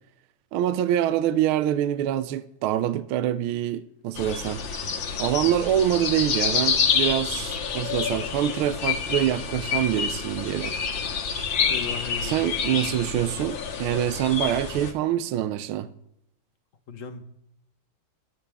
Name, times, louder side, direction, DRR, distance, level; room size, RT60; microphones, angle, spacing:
voice 1, 0.5-4.6 5.2-10.7 12.2-15.9, right 11 dB, 75° right, 1.4 m, -25 dB
sound 1, 4.1-14.9, left 6 dB, 65° left, 2.0 m, -28 dB
voice 2, 11.7-12.4 16.9-17.2, left 7 dB, 45° left, 1.2 m, -36 dB
23.5 x 9.1 x 3.4 m
omnidirectional pair, 2.4 m